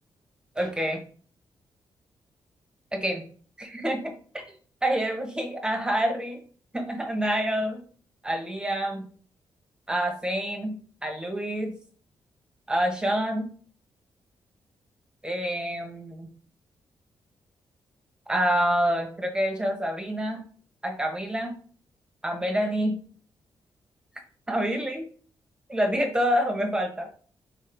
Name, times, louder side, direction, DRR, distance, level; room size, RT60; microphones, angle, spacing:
voice 1, 0.6-1.0 2.9-3.2 3.6-4.4 4.8-6.4 6.7-7.8 8.2-9.1 9.9-11.8 12.7-13.5 15.2-16.3 18.3-20.4 20.8-21.5 22.2-23.0 24.5-25.1 25.7-27.1, equal, 10° right, 3 dB, 1.0 m, -27 dB
4.0 x 3.6 x 3.4 m, 0.43 s
cardioid pair, 95°, 8 cm